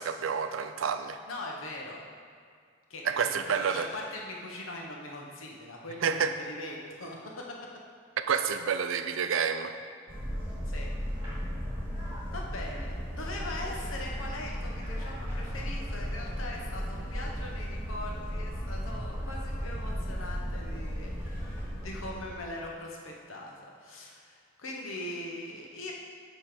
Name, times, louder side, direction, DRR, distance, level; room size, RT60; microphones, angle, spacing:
voice 1, 0.0-1.2 3.0-3.9 6.0-6.3 8.3-9.7, right 6 dB, 75° right, 9 dB, 0.4 m, -29 dB
voice 2, 1.3-2.0 2.9-7.6 10.7-10.9 12.3-25.9, left 1 dB, 90° left, -1 dB, 1.2 m, -41 dB
sound 1, 10.1-22.4, equal, 10° right, 1.7 m, -35 dB
8.0 x 3.3 x 5.9 m, 2.2 s
head